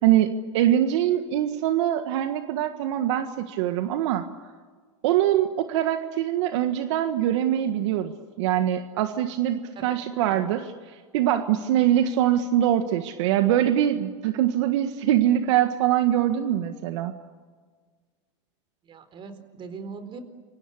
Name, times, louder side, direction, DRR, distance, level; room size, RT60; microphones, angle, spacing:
voice 1, 0.0-4.3 5.0-8.1 8.4-10.7 11.1-17.1, right 11 dB, 65° right, 7 dB, 1.7 m, -23 dB
voice 2, 18.8-20.2, right 5 dB, 30° right, 10 dB, 4.2 m, -40 dB
28.5 x 24.5 x 8.4 m, 1.5 s
hypercardioid pair, 120°, 16 cm